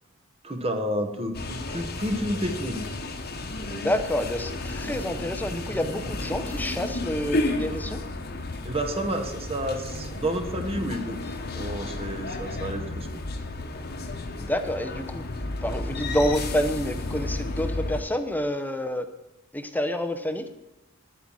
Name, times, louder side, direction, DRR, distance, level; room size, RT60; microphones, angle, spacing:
voice 1, 0.4-2.9 8.6-13.2, right 1 dB, 30° right, 7 dB, 1.1 m, -30 dB
sound 1, 1.3-18.0, left 2 dB, 50° left, 1.2 m, -32 dB
voice 2, 3.6-8.0 14.4-15.3 15.6-19.1 19.5-20.5, equal, 10° left, 9 dB, 0.7 m, -28 dB
10.0 x 9.2 x 6.2 m, 0.99 s
head